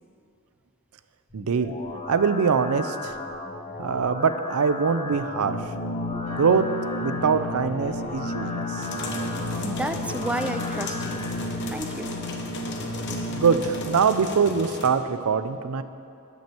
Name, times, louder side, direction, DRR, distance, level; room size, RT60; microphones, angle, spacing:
sound 1, 1.3-11.3, left 2 dB, 25° left, 0.7 m, -36 dB
voice 1, 1.3-1.8 2.1-3.1 3.8-5.6 6.3-6.7 7.0-8.9 13.3-15.8, right 5 dB, 85° right, 12 dB, 0.5 m, -23 dB
sound 2, 5.4-13.8, left 1 dB, 85° left, 1.7 m, -32 dB
sound 3, 8.8-14.9, left 2 dB, 55° left, 1.1 m, -36 dB
voice 2, 9.6-11.2 11.7-12.2, right 1 dB, 5° right, 9 dB, 0.3 m, -31 dB
10.0 x 6.3 x 6.9 m, 2.6 s
head